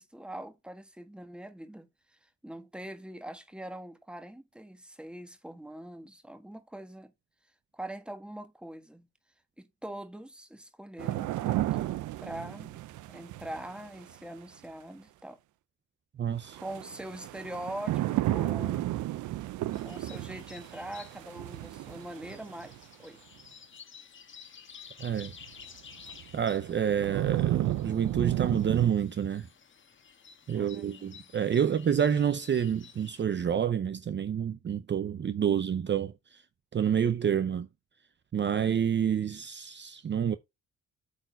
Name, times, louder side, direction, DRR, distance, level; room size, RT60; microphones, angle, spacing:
voice 1, 0.0-1.9 2.2-7.1 7.7-9.1 9.6-11.9 12.2-12.8 13.1-15.4 16.6-18.9 19.8-23.2 30.5-31.3 31.6-31.9, right 1 dB, 5° right, 1.6 m, -43 dB
sound 1, 11.0-14.1 16.5-22.8 25.4-25.5 26.1-28.9, right 15 dB, 80° right, 0.6 m, -33 dB
voice 2, 16.2-16.6 25.0-25.3 26.3-29.5 30.5-36.4 36.7-37.7 38.3-40.3, right 8 dB, 35° right, 0.7 m, -28 dB
sound 2, 19.7-33.2, left 6 dB, 40° left, 1.4 m, -53 dB
8.5 x 4.4 x 4.5 m
cardioid pair, 90°, 30 cm